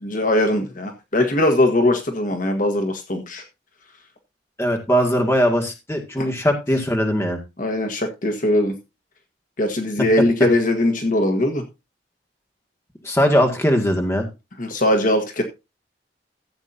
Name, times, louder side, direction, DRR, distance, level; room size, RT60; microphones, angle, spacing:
voice 1, 0.0-3.4 6.2-6.3 7.6-8.8 9.6-11.6 14.6-15.4, left 1 dB, 50° left, 4 dB, 1.5 m, -20 dB
voice 2, 4.6-7.4 13.0-14.3, equal, 15° left, 3 dB, 2.2 m, -20 dB
15.0 x 8.2 x 2.8 m, 0.26 s
head